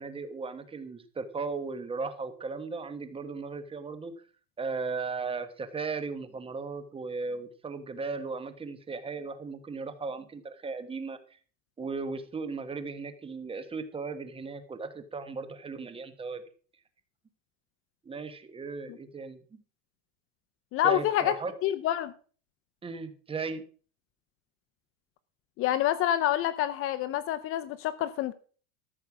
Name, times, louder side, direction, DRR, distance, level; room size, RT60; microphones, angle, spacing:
voice 1, 0.0-4.1 4.6-11.2 11.8-16.4 18.0-19.4 20.8-21.5 22.8-23.6, right 4 dB, 15° right, 1.2 m, -36 dB
voice 2, 20.7-21.4 21.6-22.1 25.6-28.3, left 12 dB, 35° left, 0.6 m, -27 dB
13.5 x 6.7 x 5.9 m
supercardioid pair, 140°, 36 cm